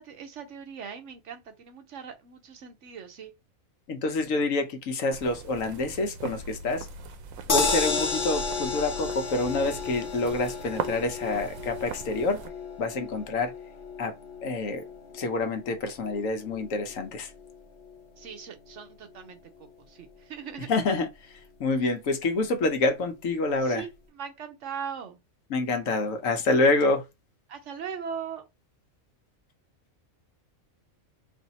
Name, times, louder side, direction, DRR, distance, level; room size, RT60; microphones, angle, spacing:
voice 1, 0.0-3.3 18.2-20.7 21.8-21.9 23.6-23.9 24.1-25.2 27.5-28.4, right 7 dB, 65° right, 1.1 m, -40 dB
voice 2, 3.9-6.9 7.5-12.4 12.8-13.5 14.0-14.1 14.4-14.8 15.1-17.3 20.7-23.8 25.5-27.0, left 2 dB, 80° left, 1.2 m, -27 dB
sound 1, 5.1-12.5, right 5 dB, 90° right, 1.0 m, -40 dB
sound 2, 7.5-19.7 20.1-20.2 20.5-20.6, left 4 dB, 45° left, 0.9 m, -33 dB
3.4 x 2.7 x 4.0 m
omnidirectional pair, 1.4 m